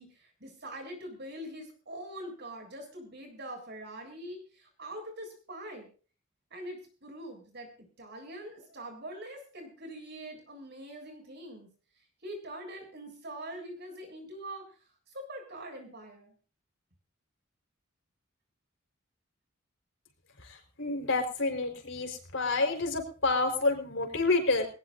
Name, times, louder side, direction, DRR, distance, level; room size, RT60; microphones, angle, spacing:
voice 1, 0.0-5.9 6.5-7.7 8.0-11.7 12.2-14.7 15.1-16.3, right 1 dB, 55° right, 4 dB, 7.5 m, -43 dB
voice 2, 20.8-24.7, left 3 dB, 65° left, 4 dB, 4.7 m, -28 dB
21.0 x 19.0 x 2.7 m, 0.38 s
head